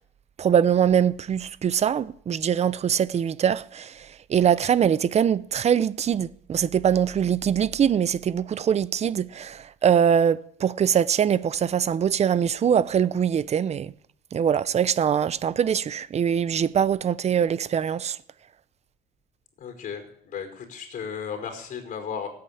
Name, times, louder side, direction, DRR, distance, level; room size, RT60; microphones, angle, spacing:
voice 1, 0.4-13.9 14.3-18.2, right 8 dB, 40° right, 0.7 m, -23 dB
voice 2, 19.6-22.3, left 7 dB, 50° left, 5.2 m, -35 dB
16.0 x 8.9 x 8.6 m
cardioid pair, 110°, 17 cm